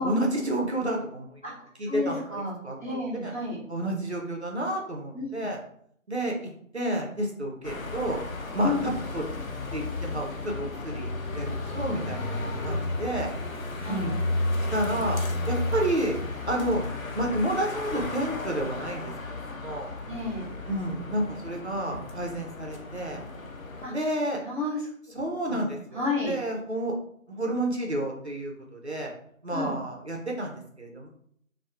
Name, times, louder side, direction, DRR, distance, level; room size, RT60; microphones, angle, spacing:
voice 1, 0.0-1.3 1.8-2.8 3.2-3.3 3.7-5.6 6.1-8.2 8.5-9.2 9.7-12.3 12.6-13.3 13.9-14.2 14.7-15.2 15.5-16.2 16.5-16.8 17.1-19.1 19.5-19.9 20.6-23.2 23.9-24.4 25.1-27.0 27.3-29.1 29.4-31.1, right 1 dB, 55° right, 0 dB, 0.5 m, -30 dB
voice 2, 1.8-3.6 5.1-5.3 8.6-8.9 13.8-14.1 20.1-20.5 23.8-23.9 24.4-24.8 25.5-25.6 25.9-26.3 29.5-29.7, left 3 dB, 40° left, -9 dB, 0.9 m, -31 dB
sound 1, 7.6-23.9, left 2 dB, 85° left, 0.6 m, -33 dB
2.8 x 2.0 x 2.3 m, 0.66 s
figure-of-eight pair, 175°, 40 cm